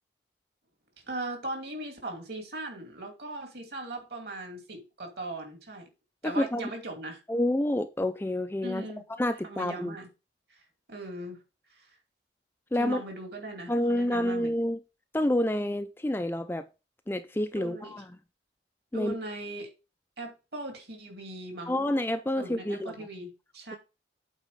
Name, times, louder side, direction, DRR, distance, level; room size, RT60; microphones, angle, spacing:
voice 1, 1.1-5.9 6.2-7.2 8.6-9.0 9.4-10.1 10.5-10.6 10.9-11.4 11.7-12.0 12.8-14.5 17.5-18.0 18.9-19.7 20.2-21.9 22.4-23.8, right 1 dB, 55° right, 2.5 m, -39 dB
voice 2, 6.2-6.7 7.3-8.9 9.2-10.0 12.7-13.0 13.7-14.8 15.1-16.7 17.1-18.1 18.9-19.1 21.7-22.9, left 1 dB, 10° left, 0.4 m, -28 dB
8.3 x 4.1 x 5.4 m
head